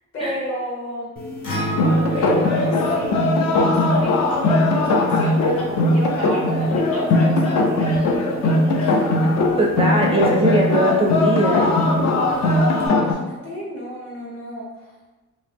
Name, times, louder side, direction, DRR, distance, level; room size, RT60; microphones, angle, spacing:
voice 1, 0.1-1.3 2.1-9.2 12.3-14.9, equal, 50° left, -4 dB, 1.3 m, -32 dB
sound 1, 1.2-12.9, left 2 dB, 30° left, 1.0 m, -34 dB
Acoustic guitar, 1.4-5.7, right 1 dB, 90° left, 0.9 m, -32 dB
sound 2, 1.7-13.1, left 2 dB, 65° left, 0.5 m, -19 dB
voice 2, 9.6-11.7, right 1 dB, 20° right, -1 dB, 0.4 m, -20 dB
2.9 x 2.1 x 3.3 m, 1.1 s
cardioid pair, 90°, 30 cm